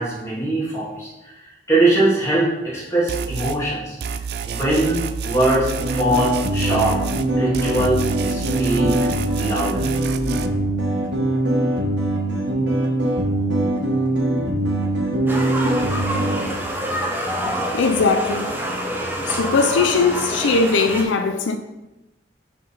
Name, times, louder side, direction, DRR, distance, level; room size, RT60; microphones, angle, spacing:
voice 1, 0.0-1.4 1.7-4.0 4.5-7.0 7.4-9.0 9.4-9.9, right 2 dB, 15° left, 2.2 m, -21 dB
sound 1, 3.1-3.6 4.0-7.3 7.5-10.5, right 6 dB, 55° right, 0.3 m, -29 dB
sound 2, 5.8-16.4, right 1 dB, 75° right, 1.2 m, -22 dB
sound 3, 15.3-21.0, right 1 dB, 10° right, 0.7 m, -26 dB
voice 2, 17.7-18.6 19.3-21.6, left 4 dB, 80° left, 0.4 m, -19 dB
5.3 x 3.8 x 5.5 m
head